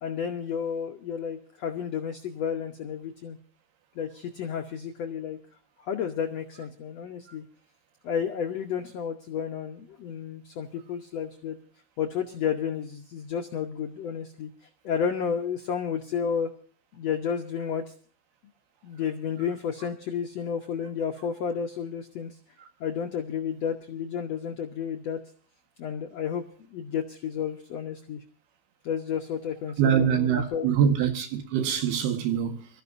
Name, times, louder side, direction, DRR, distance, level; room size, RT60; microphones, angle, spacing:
voice 1, 0.0-3.4 3.9-5.4 5.8-7.4 8.0-11.6 12.0-14.5 14.8-16.5 16.9-17.9 18.8-22.4 22.8-25.2 25.8-26.4 26.7-28.2 28.8-30.7, left 7 dB, 70° left, 1.6 m, -31 dB
voice 2, 29.8-32.7, right 8 dB, 85° right, 3.6 m, -24 dB
25.0 x 14.0 x 2.6 m
omnidirectional pair, 4.5 m